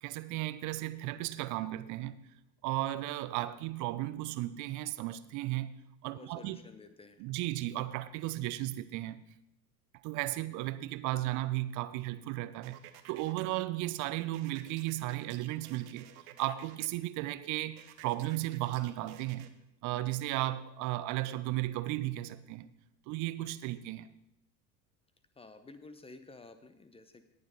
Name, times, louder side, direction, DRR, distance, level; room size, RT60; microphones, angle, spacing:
voice 1, 0.0-2.2 2.6-5.7 6.0-6.6 7.2-9.3 10.0-12.8 13.1-16.1 16.4-19.5 19.8-22.7 23.1-24.1, right 16 dB, 35° right, 0.7 m, -35 dB
voice 2, 6.1-7.3 25.3-27.3, left 3 dB, 10° left, 0.9 m, -52 dB
sound 1, 12.6-13.5 14.3-16.9 17.8-19.5, right 12 dB, 55° right, 1.1 m, -54 dB
18.0 x 6.9 x 4.1 m
figure-of-eight pair, 70°, 50 cm